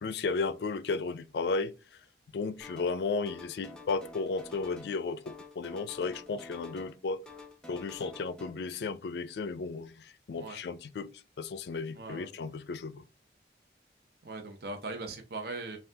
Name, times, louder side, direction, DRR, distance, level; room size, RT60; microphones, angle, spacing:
voice 1, 0.0-1.7 2.3-7.2 7.7-11.1 11.4-13.0, left 4 dB, 70° left, 0.4 m, -34 dB
sound 1, 2.6-3.0 3.2-5.0 5.2-7.0 7.3-8.5, left 3 dB, 5° left, 0.5 m, -49 dB
voice 2, 11.9-12.3 14.2-15.8, right 3 dB, 55° right, 0.6 m, -39 dB
5.6 x 2.3 x 2.7 m
head